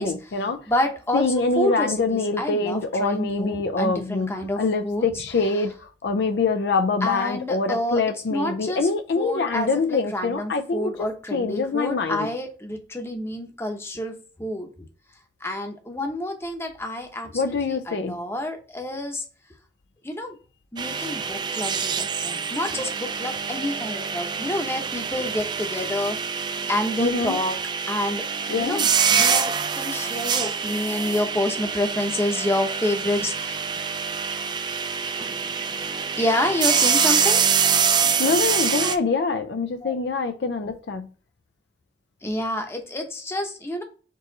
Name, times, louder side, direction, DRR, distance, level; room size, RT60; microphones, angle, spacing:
voice 1, 0.0-0.7 1.1-12.3 17.3-18.1 27.0-27.4 28.5-28.9 38.2-41.1, left 4 dB, 70° left, 0.5 m, -25 dB
voice 2, 0.7-1.3 1.6-5.0 7.0-8.0 8.3-8.9 9.2-14.7 15.4-19.2 20.0-20.4 20.7-26.2 26.7-27.6 27.9-28.2 28.5-28.8 29.1-33.6 36.2-37.4 39.8-40.0 42.2-43.8, left 1 dB, 15° left, 0.8 m, -28 dB
sound 1, 20.8-39.0, right 6 dB, 25° right, 0.3 m, -25 dB
4.5 x 3.0 x 3.8 m
head